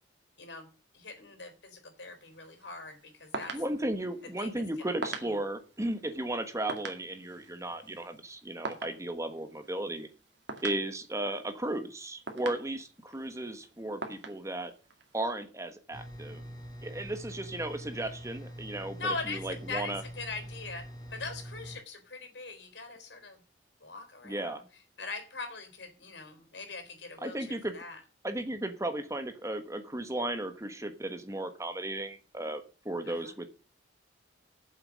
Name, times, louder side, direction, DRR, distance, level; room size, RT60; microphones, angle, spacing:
voice 1, 0.4-0.7 0.9-3.6 4.4-4.5 19.0-23.4 23.8-24.6 25.0-28.0 33.1-33.3, left 3 dB, 75° left, 7 dB, 3.8 m, -41 dB
sound 1, 2.0-15.2, right 3 dB, 75° right, 2.2 m, -45 dB
voice 2, 3.5-10.1 10.6-14.7 15.1-16.4 16.8-20.0 24.2-24.6 27.2-27.7 28.2-33.5, right 1 dB, 15° right, 8 dB, 1.3 m, -35 dB
sound 2, 15.9-21.8, equal, 25° left, 2.8 m, -44 dB
9.0 x 7.6 x 7.5 m, 0.35 s
head